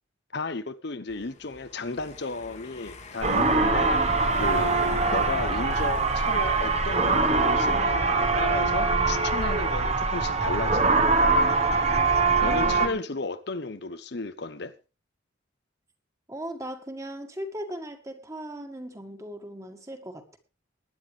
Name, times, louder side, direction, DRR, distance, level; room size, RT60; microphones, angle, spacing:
voice 1, 0.3-4.1 4.4-4.7 5.1-11.6 12.4-14.7, left 3 dB, 55° left, 0.9 m, -33 dB
Car passing by / Engine, 1.1-7.8, left 3 dB, 35° left, 1.5 m, -41 dB
sound 1, 3.2-12.9, right 3 dB, 30° right, 1.2 m, -23 dB
voice 2, 12.4-13.1 16.3-20.4, right 1 dB, 15° right, 1.9 m, -38 dB
20.5 x 10.0 x 3.3 m
head